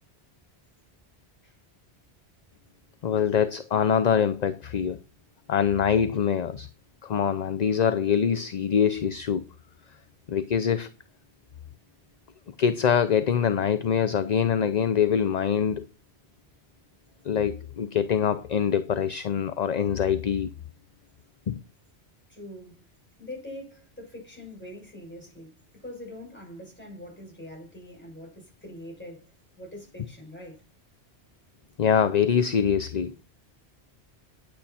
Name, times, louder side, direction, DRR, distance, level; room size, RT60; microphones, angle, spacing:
voice 1, 3.0-5.0 5.5-6.7 7.0-9.4 10.3-10.9 12.6-15.9 17.2-20.5 21.5-21.6 31.8-33.2, left 8 dB, 45° left, 0.6 m, -24 dB
voice 2, 22.3-22.9 23.2-29.3 29.6-30.6, left 1 dB, 10° left, 6.7 m, -43 dB
10.0 x 8.5 x 4.2 m
omnidirectional pair, 1.1 m